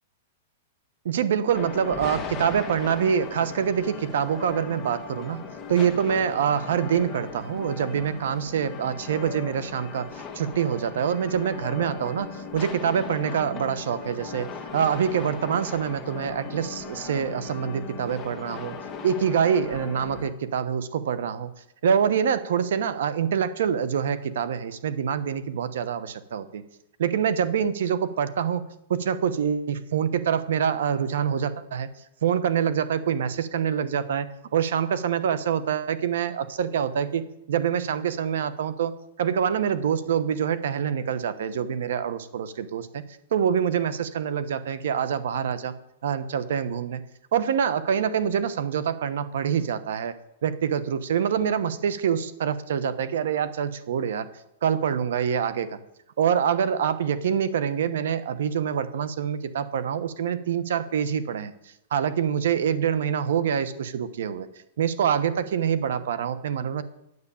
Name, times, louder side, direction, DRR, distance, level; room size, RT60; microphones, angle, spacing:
voice 1, 1.0-5.4 5.7-10.1 10.3-18.8 19.0-21.5 21.8-26.6 27.0-28.6 28.9-31.9 32.2-34.3 34.5-37.2 37.5-38.9 39.2-43.0 43.3-45.7 46.0-47.0 47.3-50.1 50.4-54.3 54.6-55.8 56.2-61.5 61.9-64.5 64.8-66.8, right 8 dB, 75° right, 13 dB, 1.0 m, -25 dB
sound 1, 1.5-20.3, left 5 dB, 20° left, 1.5 m, -38 dB
9.7 x 8.1 x 7.1 m, 0.86 s
hypercardioid pair, 140°, 0 cm